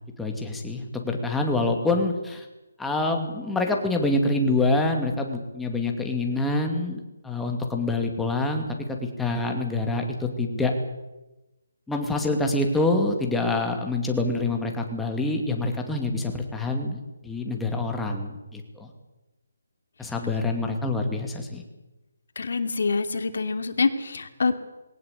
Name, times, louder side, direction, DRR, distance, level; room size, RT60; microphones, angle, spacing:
voice 1, 0.2-2.5 2.8-10.7 11.9-18.9 20.0-21.6, left 2 dB, 5° left, 2 dB, 2.5 m, -26 dB
voice 2, 22.4-24.5, left 4 dB, 60° left, 8 dB, 2.6 m, -25 dB
21.0 x 18.5 x 8.3 m, 1.0 s
hypercardioid pair, 160°, 0 cm